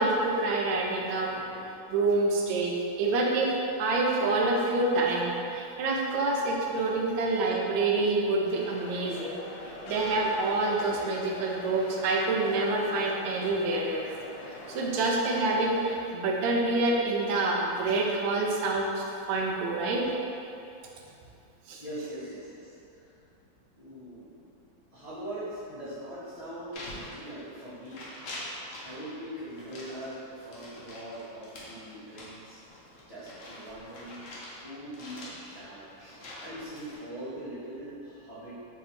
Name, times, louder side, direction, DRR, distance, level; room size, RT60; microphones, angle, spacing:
voice 1, 0.0-1.4 1.9-3.5 3.8-9.4 9.9-14.0 14.4-20.1 21.7-21.8, right 2 dB, 85° right, -1 dB, 1.3 m, -27 dB
sound 1, 8.4-16.0, left 2 dB, 85° left, 1.3 m, -43 dB
voice 2, 21.8-23.0 23.7-24.4 24.9-28.0 28.8-32.6 33.1-38.6, right 1 dB, 30° left, -14 dB, 0.7 m, -42 dB
sound 2, 26.7-27.6 27.8-29.1 29.5-34.6 34.9-37.0, left 1 dB, 55° left, 0.9 m, -44 dB
3.4 x 2.8 x 4.1 m, 2.7 s
omnidirectional pair, 2.0 m